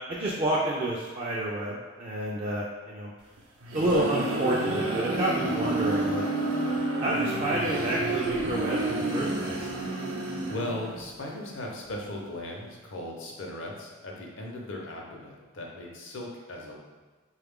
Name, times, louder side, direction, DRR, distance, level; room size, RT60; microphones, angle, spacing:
voice 1, 0.1-3.1 3.7-6.3 7.0-9.7, right 1 dB, 30° right, -5 dB, 0.3 m, -29 dB
sound 1, 3.4-11.1, right 2 dB, 70° right, 0.6 m, -29 dB
voice 2, 10.5-16.8, left 1 dB, 65° left, -1 dB, 0.7 m, -37 dB
3.6 x 2.3 x 3.5 m, 1.4 s
head